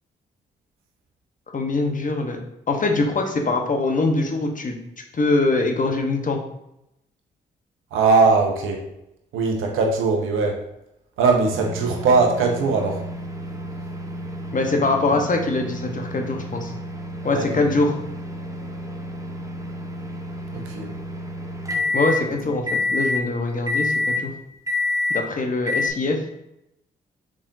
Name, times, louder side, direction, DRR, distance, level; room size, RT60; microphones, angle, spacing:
voice 1, 1.5-2.4 2.7-4.8 5.1-6.4 14.5-16.7 17.2-17.9 21.9-24.3 25.1-26.2, left 3 dB, 40° left, 3 dB, 1.0 m, -23 dB
voice 2, 7.9-8.8 9.3-10.6 11.2-13.0 17.2-17.7 20.5-20.9, right 4 dB, 75° right, 1 dB, 0.8 m, -20 dB
sound 1, 11.5-22.2 22.7-23.2 23.7-24.2 24.7-25.2 25.7-25.9, left 2 dB, 15° right, 0.9 m, -29 dB
4.9 x 3.6 x 2.6 m, 0.83 s
hypercardioid pair, 45°, 21 cm